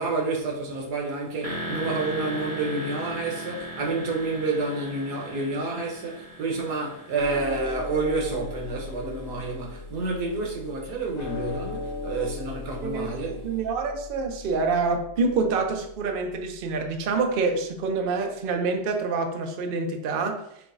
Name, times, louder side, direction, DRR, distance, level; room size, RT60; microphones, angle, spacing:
voice 1, 0.0-13.5, right 3 dB, 90° right, 1.5 m, -29 dB
sound 1, 1.4-9.2, equal, 30° right, 0.7 m, -38 dB
sound 2, 7.2-17.6, left 3 dB, 80° left, 0.4 m, -38 dB
voice 2, 12.8-20.4, right 4 dB, 70° right, 0.5 m, -27 dB
5.6 x 3.4 x 2.5 m
omnidirectional pair, 1.7 m